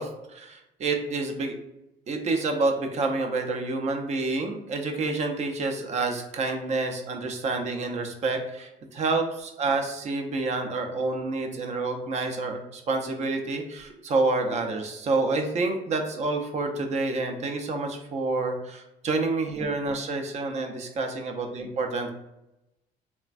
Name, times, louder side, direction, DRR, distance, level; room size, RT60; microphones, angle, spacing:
voice 1, 0.0-1.5 2.1-22.1, right 3 dB, 40° right, 4 dB, 0.5 m, -28 dB
3.2 x 2.1 x 2.4 m, 0.90 s
cardioid pair, 110°, 17 cm